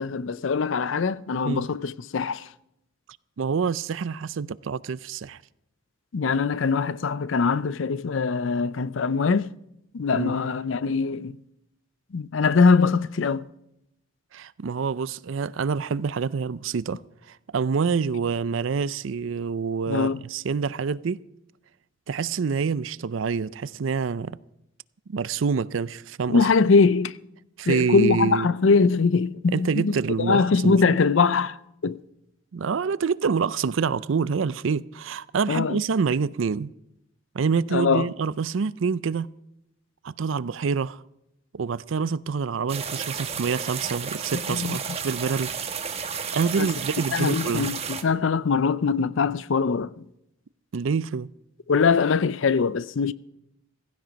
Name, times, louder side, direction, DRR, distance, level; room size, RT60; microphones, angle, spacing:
voice 1, 0.0-2.5 6.1-9.5 9.9-11.4 12.1-13.5 19.9-20.2 26.3-27.2 27.7-32.0 35.5-35.8 37.7-38.1 44.5-44.8 46.6-46.7 47.1-50.1 51.7-53.1, left 4 dB, 70° left, 0.5 m, -22 dB
voice 2, 3.4-5.4 10.1-10.4 14.3-17.0 17.3-21.2 22.1-24.4 25.1-26.5 27.6-28.5 29.5-30.9 32.5-36.7 37.3-39.3 40.0-41.0 41.5-45.5 46.3-47.8 50.7-51.3, right 5 dB, 75° right, 0.5 m, -26 dB
sound 1, 42.7-48.0, right 6 dB, 30° right, 1.2 m, -32 dB
16.0 x 15.0 x 5.2 m
head